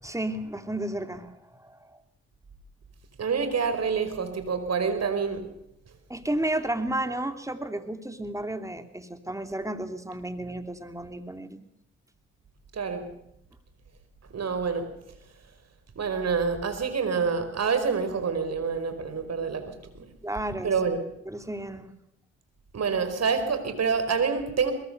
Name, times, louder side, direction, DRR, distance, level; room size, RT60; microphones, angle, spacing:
voice 1, 0.0-2.0 6.1-11.6 20.2-20.7 21.3-21.9, right 1 dB, 10° right, 7 dB, 3.1 m, -32 dB
voice 2, 3.2-5.5 12.7-13.1 14.3-14.9 15.9-20.1 20.6-21.0 22.7-24.7, right 5 dB, 55° right, 9 dB, 4.9 m, -27 dB
22.0 x 21.5 x 6.8 m, 0.81 s
hypercardioid pair, 50°, 32 cm